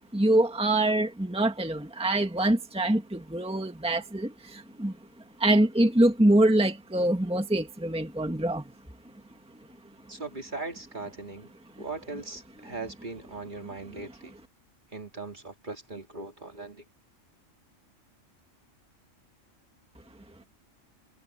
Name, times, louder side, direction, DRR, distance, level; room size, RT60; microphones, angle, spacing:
voice 1, 0.1-4.9 5.4-8.6, right 1 dB, 5° right, 1.7 m, -24 dB
voice 2, 10.1-11.5 11.8-14.3 14.9-16.8, right 3 dB, 40° right, 2.6 m, -39 dB
omnidirectional pair, 1.3 m